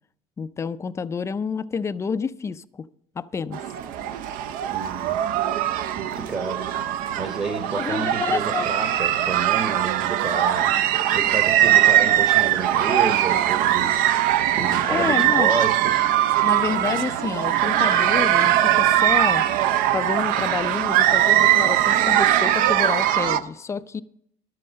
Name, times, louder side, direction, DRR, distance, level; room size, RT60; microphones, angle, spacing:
voice 1, 0.4-2.9 3.2-3.6 7.7-8.7 14.9-15.5 16.4-19.4 19.9-24.0, left 5 dB, 20° left, 0.4 m, -28 dB
sound 1, 3.5-23.4, right 12 dB, 70° right, 0.6 m, -21 dB
voice 2, 4.7-5.2 5.9-10.8 11.1-14.1 14.6-16.1, right 4 dB, 30° right, 1.0 m, -30 dB
11.5 x 7.8 x 6.3 m
cardioid pair, 135°, 15 cm